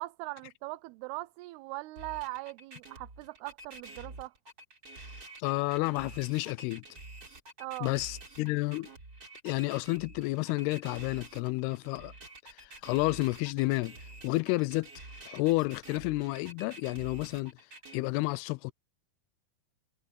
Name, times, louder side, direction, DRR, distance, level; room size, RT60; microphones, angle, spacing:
voice 1, 0.0-4.3 7.6-7.9, right 22 dB, 85° right, 2.6 m, -40 dB
sound 1, 2.0-18.0, right 2 dB, 25° right, 3.7 m, -48 dB
voice 2, 5.4-6.8 7.8-8.9 9.4-12.1 12.6-14.0 14.2-14.9 15.3-17.5 17.9-18.7, left 22 dB, 85° left, 2.5 m, -30 dB
omnidirectional pair, 4.6 m